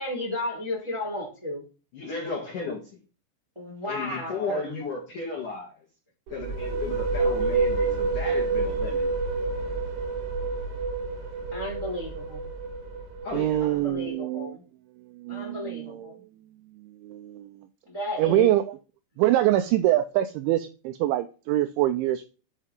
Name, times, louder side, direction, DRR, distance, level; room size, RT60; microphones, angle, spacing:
voice 1, 0.0-1.6 3.5-4.8 11.5-12.4 13.7-14.6 15.3-16.1 17.9-18.5, left 1 dB, 5° right, -2 dB, 2.8 m, -33 dB
voice 2, 1.9-2.8 3.9-5.7 6.3-9.0 13.2-13.6, left 4 dB, 55° left, -3 dB, 2.5 m, -34 dB
sound 1, 6.3-13.9, right 3 dB, 65° right, 3.7 m, -28 dB
voice 3, 13.3-14.6 15.2-16.1 17.0-17.5 18.2-18.8 19.2-22.3, right 14 dB, 90° right, 9 dB, 2.6 m, -24 dB
8.3 x 5.5 x 3.6 m, 0.33 s
omnidirectional pair, 5.9 m